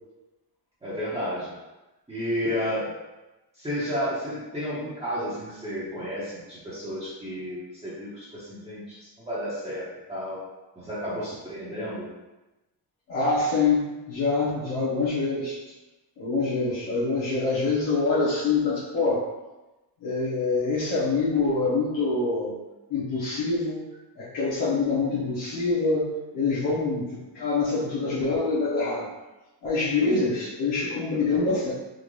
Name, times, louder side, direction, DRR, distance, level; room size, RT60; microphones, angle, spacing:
voice 1, 0.8-1.5 2.1-2.9 3.6-9.0 9.3-10.4 10.8-12.1, equal, 15° right, -11 dB, 1.1 m, -32 dB
voice 2, 13.1-15.6 16.2-19.2 20.0-22.6 22.9-23.8 24.2-26.1 26.3-29.1 29.6-31.7, left 3 dB, 85° left, -10 dB, 1.2 m, -25 dB
3.9 x 2.5 x 3.2 m, 1.1 s
cardioid pair, 120°, 43 cm